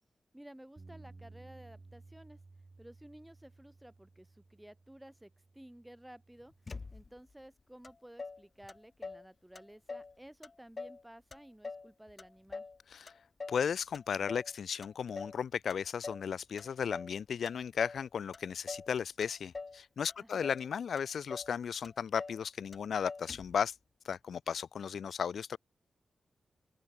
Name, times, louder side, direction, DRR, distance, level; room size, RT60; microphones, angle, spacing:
voice 1, 0.3-2.4 2.8-6.5 6.9-12.7 20.2-20.5, right 1 dB, 5° right, 0.8 m, -54 dB
Bass guitar, 0.8-7.0, right 3 dB, 30° right, 1.9 m, -57 dB
Motor vehicle (road), 6.7-7.3 7.8-7.9 8.2-9.3 9.5-10.1 10.4-11.0 11.3-12.8 13.1-13.7 13.9-14.5 14.8-15.4 15.7-16.3 16.6-17.2 17.5-18.0 18.3-18.9 19.2-19.8 20.1-20.7 21.0-21.1 21.3-21.5 21.8-22.4 22.7-22.8 23.1-23.6, left 4 dB, 40° left, 0.7 m, -44 dB
voice 2, 13.5-23.7 24.0-25.6, left 7 dB, 75° left, 0.4 m, -35 dB
open air
cardioid pair, 85°, 0 cm